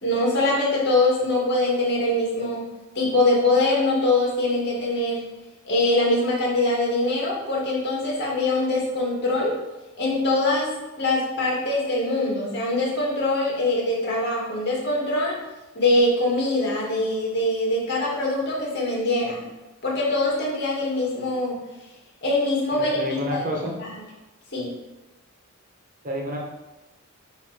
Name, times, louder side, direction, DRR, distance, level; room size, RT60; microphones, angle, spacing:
voice 1, 0.0-2.7 2.9-5.2 5.7-9.5 10.0-10.7 11.0-15.4 15.7-19.5 19.8-21.6 22.2-23.4 23.8-23.9 24.5-24.7, left 2 dB, 55° left, -4 dB, 2.3 m, -23 dB
voice 2, 22.8-23.8 26.0-26.4, equal, 40° right, -1 dB, 1.4 m, -29 dB
9.1 x 3.2 x 5.1 m, 1.1 s
head